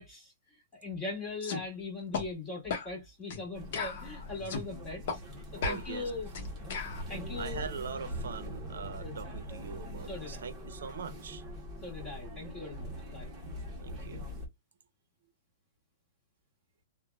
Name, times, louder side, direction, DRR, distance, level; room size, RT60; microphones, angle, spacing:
voice 1, 0.0-5.2 5.5-6.3 7.1-7.7 8.9-9.2 10.1-10.4 11.8-13.3, left 3 dB, 15° left, 1.6 m, -40 dB
sound 1, 1.4-1.6 2.1-2.3 2.7-2.9 3.3-3.4 3.7-4.7 5.1-5.2 5.6-7.0, left 5 dB, 50° left, 0.8 m, -36 dB
sound 2, 3.5-14.5, equal, 15° right, 1.1 m, -42 dB
voice 2, 5.6-6.1 7.4-11.4 13.8-14.3, right 6 dB, 80° right, 0.7 m, -42 dB
3.2 x 2.2 x 2.2 m
hypercardioid pair, 160°, 0 cm